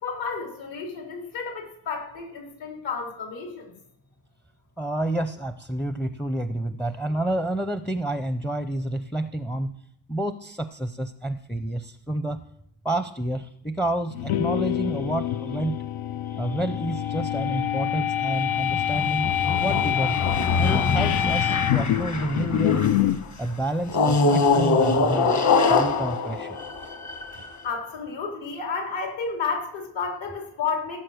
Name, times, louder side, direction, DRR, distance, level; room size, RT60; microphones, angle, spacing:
voice 1, 0.0-3.7 27.6-31.0, left 5 dB, 65° left, 3 dB, 3.7 m, -31 dB
voice 2, 4.8-9.8 10.1-12.4 12.8-15.8 16.2-19.3 19.6-20.2 20.6-22.9 23.4-25.4 25.7-26.6, right 1 dB, 5° left, 10 dB, 0.5 m, -29 dB
sound 1, 14.1-23.2, left 11 dB, 85° left, 0.8 m, -26 dB
sound 2, 18.4-23.1 23.9-27.5, left 4 dB, 35° left, 1.5 m, -24 dB
17.0 x 7.5 x 6.3 m, 0.75 s
cardioid pair, 130°, 48 cm